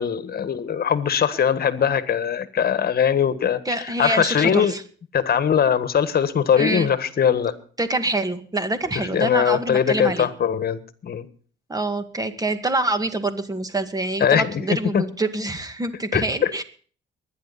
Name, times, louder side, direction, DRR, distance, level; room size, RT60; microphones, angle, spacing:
voice 1, 0.0-4.7 5.1-7.5 8.9-11.2 14.2-14.6 14.9-15.0 16.1-16.5, left 8 dB, 50° left, 1.6 m, -21 dB
voice 2, 3.7-4.8 6.6-6.9 7.8-10.3 11.7-16.6, right 2 dB, 20° right, 2.1 m, -26 dB
23.5 x 10.5 x 4.2 m
cardioid pair, 90°, 20 cm